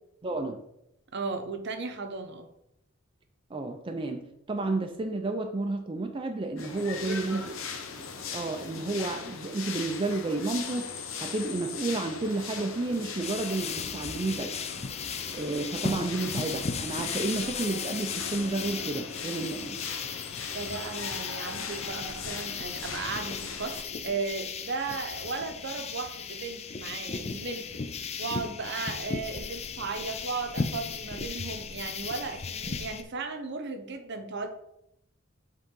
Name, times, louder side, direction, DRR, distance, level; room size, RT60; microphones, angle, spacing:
voice 1, 0.2-0.6 3.5-7.4 8.3-14.6 15.3-19.8, right 2 dB, 25° right, 4 dB, 0.4 m, -31 dB
voice 2, 1.1-2.5 7.0-7.5 20.5-27.7 28.0-34.5, right 4 dB, 60° right, 7 dB, 0.8 m, -36 dB
sound 1, 6.6-23.8, left 5 dB, 70° left, 0.8 m, -39 dB
sound 2, 13.2-33.0, left 5 dB, 30° left, 0.4 m, -36 dB
7.9 x 3.8 x 3.7 m, 0.80 s
head